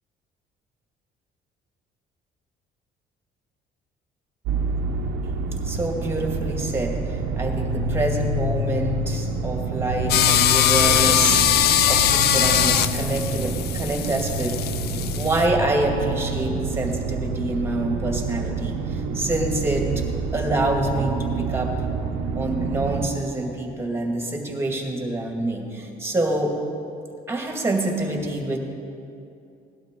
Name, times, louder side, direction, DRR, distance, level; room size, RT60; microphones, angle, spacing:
sound 1, 4.5-23.1, right 3 dB, 90° right, 0.9 m, -27 dB
voice 1, 5.2-11.5 11.9-14.6 15.2-20.0 20.3-21.9 22.4-26.5 27.3-28.6, right 1 dB, 15° right, 1 dB, 2.1 m, -26 dB
sound 2, 10.1-15.5, left 11 dB, 70° left, 0.5 m, -21 dB
17.5 x 12.0 x 3.8 m, 2.6 s
cardioid pair, 110°, 17 cm